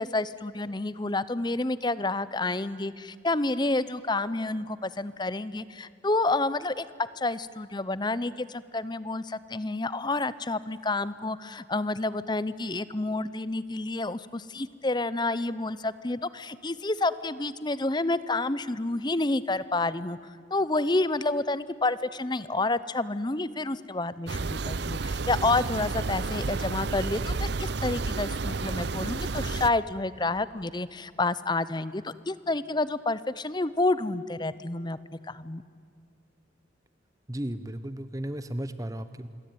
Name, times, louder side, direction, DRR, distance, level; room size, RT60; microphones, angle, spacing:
voice 1, 0.0-6.9 7.2-20.2 20.5-35.0 35.3-35.6, left 2 dB, 20° left, 16 dB, 0.8 m, -29 dB
sound 1, 24.3-29.7, right 3 dB, 55° right, 0.7 m, -31 dB
voice 2, 37.3-39.3, right 1 dB, 15° right, 12 dB, 0.8 m, -34 dB
27.0 x 22.0 x 9.4 m, 2.2 s
head